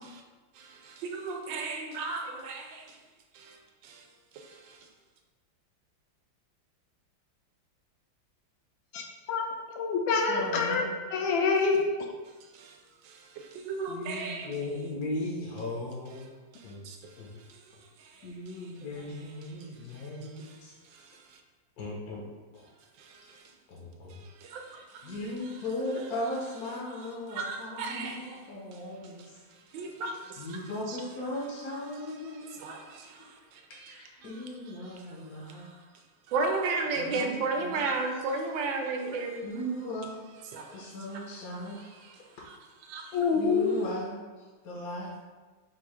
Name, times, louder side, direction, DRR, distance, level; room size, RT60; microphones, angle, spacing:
voice 1, 0.5-3.0 3.3-3.6 3.8-4.0 4.3-4.8 12.5-12.8 13.0-14.5 16.5-17.2 17.5-17.6 18.0-18.5 19.4-19.5 19.9-20.6 20.9-21.2 23.0-23.4 24.1-25.2 25.4-25.6 27.3-28.4 28.7-28.8 29.7-30.6 30.9-31.0 32.2-35.0 35.4-35.8 36.3-39.9 40.5-41.3 41.7-42.6 42.9-43.2, right 3 dB, 75° right, 3 dB, 1.3 m, -36 dB
voice 2, 9.7-10.8 11.1-11.8 43.1-43.8, left 5 dB, 80° left, 1 dB, 1.3 m, -26 dB
voice 3, 10.3-11.0 13.9-16.3 16.6-17.3 18.2-20.7 21.8-22.2 23.7-24.2 24.7-29.2 30.4-33.0 33.9-35.7 37.0-37.8 39.4-40.2 40.7-41.9 43.3-45.2, left 1 dB, 65° left, -3 dB, 1.0 m, -38 dB
4.4 x 2.4 x 4.8 m, 1.3 s
omnidirectional pair, 2.1 m